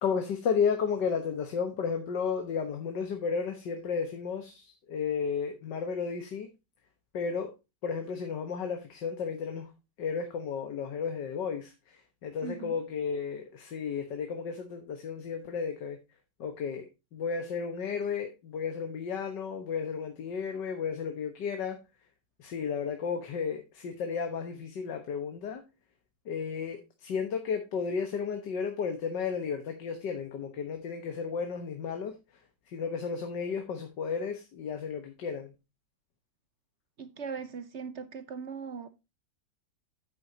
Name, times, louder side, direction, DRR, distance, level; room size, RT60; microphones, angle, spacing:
voice 1, 0.0-6.5 7.1-7.5 7.8-9.7 10.0-16.0 16.4-16.9 17.1-21.8 22.4-25.6 26.3-32.1 32.7-35.5, left 6 dB, 85° left, 1.9 m, -33 dB
voice 2, 12.4-12.7 37.0-38.9, right 5 dB, 55° right, 0.9 m, -39 dB
9.7 x 8.1 x 2.8 m
omnidirectional pair, 1.8 m